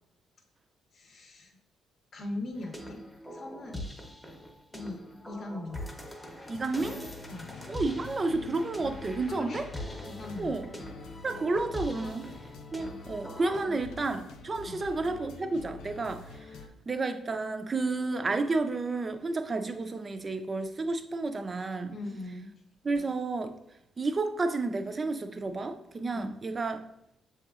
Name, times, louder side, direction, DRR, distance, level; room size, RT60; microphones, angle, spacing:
voice 1, 0.9-1.6 2.1-3.0 3.3-3.9 4.7-5.8 7.3-7.5 9.3-9.6 10.1-10.6 11.9-12.2 13.6-13.8 14.6-14.8 21.9-22.5 26.1-26.4, left 2 dB, 55° left, 1 dB, 0.7 m, -40 dB
sound 1, 2.5-13.6, left 1 dB, 10° left, 0.8 m, -43 dB
sound 2, 6.4-16.7, left 4 dB, 85° left, 0.4 m, -47 dB
voice 2, 6.5-7.0 7.7-9.7 10.4-10.7 11.2-12.3 12.7-16.4 16.9-21.9 22.8-23.5 24.0-26.8, right 3 dB, 30° right, 8 dB, 0.4 m, -31 dB
6.9 x 2.8 x 2.4 m, 0.79 s
cardioid pair, 90°, 0 cm